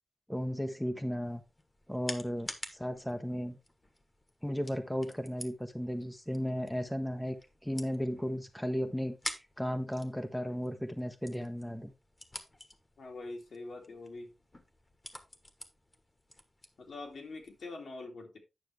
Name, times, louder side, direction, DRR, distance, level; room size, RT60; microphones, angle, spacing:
voice 1, 0.3-1.4 1.9-3.6 4.4-7.4 7.6-9.2 9.6-11.9, equal, 5° left, 0.9 m, -35 dB
sound 1, 1.2-17.6, left 1 dB, 20° left, 1.3 m, -49 dB
voice 2, 13.0-14.3 16.8-18.4, left 3 dB, 80° left, 2.6 m, -44 dB
9.5 x 6.6 x 3.3 m
wide cardioid pair, 120°, 0 cm